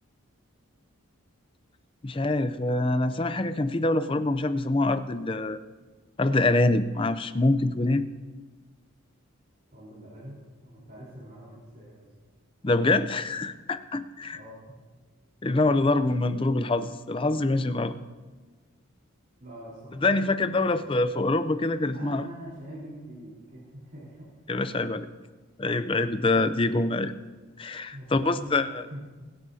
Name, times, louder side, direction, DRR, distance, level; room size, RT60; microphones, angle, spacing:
voice 1, 2.0-5.6 6.2-8.1 12.6-14.4 15.4-17.9 20.0-22.3 24.5-25.1 25.6-27.1 27.6-28.8, left 2 dB, 25° left, 11 dB, 0.5 m, -25 dB
voice 2, 9.7-10.4 10.6-12.1 14.3-14.8 19.4-20.6 21.9-24.3 26.5-26.7 27.9-29.2, equal, 45° right, -9 dB, 4.0 m, -44 dB
24.0 x 11.0 x 2.8 m, 1.3 s
head